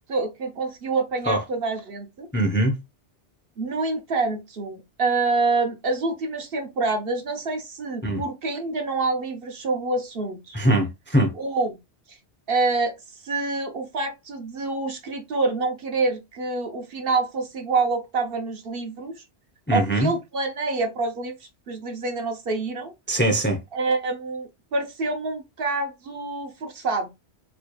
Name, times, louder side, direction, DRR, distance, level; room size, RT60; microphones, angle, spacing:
voice 1, 0.1-2.3 3.6-10.6 11.3-11.8 12.1-12.2 12.5-19.2 19.7-22.9 23.7-27.1, right 3 dB, 55° right, 1.0 m, -27 dB
voice 2, 2.3-2.8 8.0-8.2 10.5-11.3 19.7-20.1 23.1-23.6, right 1 dB, 15° left, 0.6 m, -21 dB
4.1 x 3.2 x 2.3 m
omnidirectional pair, 1.2 m